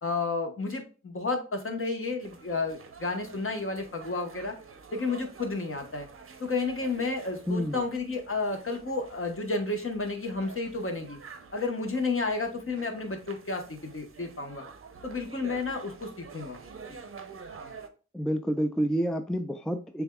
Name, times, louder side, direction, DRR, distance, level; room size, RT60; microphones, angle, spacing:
voice 1, 0.0-4.5 4.9-6.1 6.4-11.2 11.5-14.6 15.0-16.6 16.9-17.0, left 3 dB, 45° left, 1.1 m, -31 dB
sound 1, 2.2-17.9, right 5 dB, 45° right, 0.6 m, -49 dB
voice 2, 7.5-7.8 18.1-20.0, equal, ahead, 0.3 m, -28 dB
6.8 x 2.4 x 2.3 m
cardioid pair, 60°, 30 cm